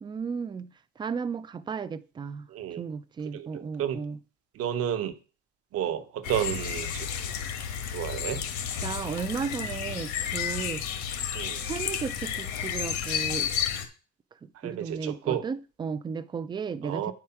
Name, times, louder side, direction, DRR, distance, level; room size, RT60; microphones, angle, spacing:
voice 1, 0.0-2.5 2.8-4.2 8.8-11.0 11.6-13.5 14.6-17.1, right 6 dB, 15° right, 0.4 m, -34 dB
voice 2, 2.5-2.8 3.3-4.0 4.6-5.1 5.7-7.1 7.9-8.4 11.3-11.6 14.6-15.4 16.8-17.1, right 10 dB, 50° right, 1.0 m, -31 dB
sound 1, 6.2-13.9, left 8 dB, 75° left, 1.6 m, -32 dB
9.3 x 4.8 x 5.7 m
cardioid pair, 165°, 30 cm